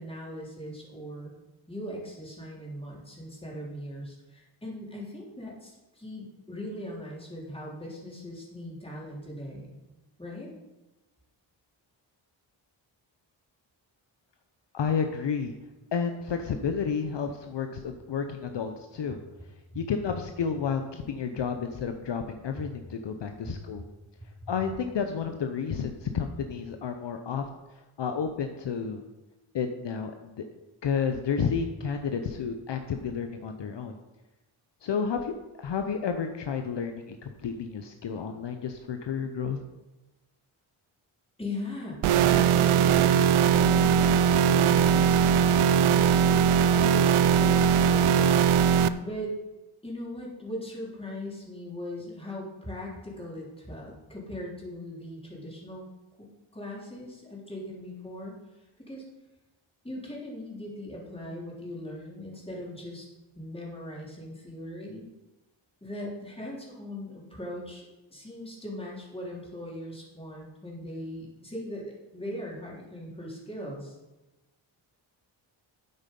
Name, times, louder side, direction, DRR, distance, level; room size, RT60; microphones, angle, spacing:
voice 1, 0.0-1.3 1.7-9.7 10.2-10.5 23.4-23.5 24.4-24.5 41.4-49.4 49.8-55.8 56.2-58.4 58.9-59.0 59.8-63.1 63.4-65.1 65.8-74.0, left 1 dB, 10° left, -4 dB, 3.5 m, -39 dB
voice 2, 14.7-15.5 15.9-19.2 19.7-23.8 24.5-27.4 28.0-29.0 29.5-30.4 30.8-34.0 34.8-39.6, left 6 dB, 60° left, 6 dB, 0.9 m, -31 dB
sound 1, 42.0-48.9, right 7 dB, 85° right, 0.6 m, -20 dB
9.3 x 8.0 x 5.4 m, 1.1 s
wide cardioid pair, 100°, 48 cm